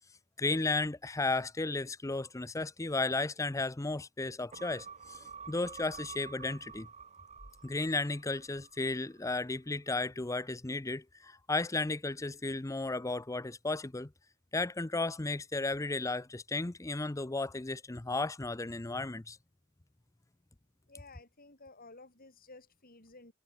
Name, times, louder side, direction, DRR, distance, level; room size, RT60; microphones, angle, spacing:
voice 1, 0.4-6.9 7.6-14.1 14.5-19.4, left 3 dB, 15° left, 0.5 m, -34 dB
sound 1, 4.5-9.2 9.6-9.7, right 5 dB, 30° right, 3.3 m, -49 dB
voice 2, 20.9-23.3, left 3 dB, 45° left, 5.6 m, -54 dB
head